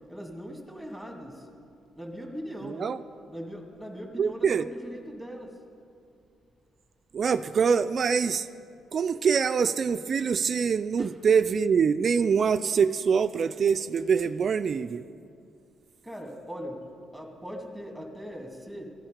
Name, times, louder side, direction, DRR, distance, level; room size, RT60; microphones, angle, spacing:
voice 1, 0.1-1.6 1.9-2.9 3.3-5.6 11.0-11.1 16.0-18.9, equal, ahead, 2 dB, 2.0 m, -40 dB
voice 2, 2.7-3.0 4.2-4.7 7.1-8.5 8.9-15.0, right 6 dB, 50° right, 12 dB, 0.3 m, -24 dB
15.0 x 10.5 x 5.1 m, 2.5 s
cardioid pair, 90°, 0 cm